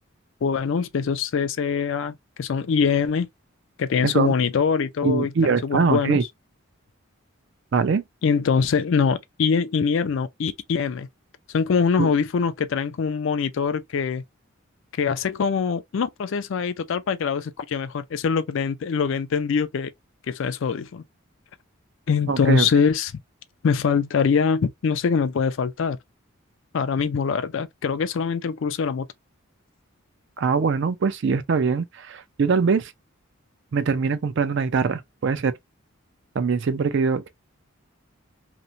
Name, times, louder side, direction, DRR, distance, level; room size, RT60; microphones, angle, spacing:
voice 1, 0.4-3.3 3.8-6.2 8.2-11.1 11.5-14.2 15.0-19.9 20.3-21.0 22.1-23.1 23.6-26.0 26.7-29.1, left 6 dB, 65° left, 0.4 m, -23 dB
voice 2, 4.0-4.3 5.0-6.2 7.7-8.0 12.0-12.1 22.3-22.7 30.4-32.9 33.7-35.5 36.4-37.3, right 5 dB, 55° right, 0.4 m, -22 dB
2.9 x 2.1 x 2.5 m
head